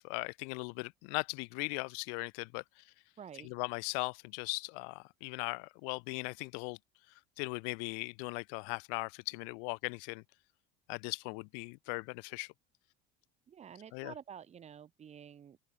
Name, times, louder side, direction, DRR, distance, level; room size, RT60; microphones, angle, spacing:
voice 1, 0.0-2.6 3.5-6.8 7.4-10.2 10.9-12.5 13.9-14.1, left 40 dB or more, 85° left, 0.4 m, -38 dB
voice 2, 3.2-3.5 13.5-15.6, right 8 dB, 35° right, 7.6 m, -50 dB
open air
cardioid pair, 130°, 20 cm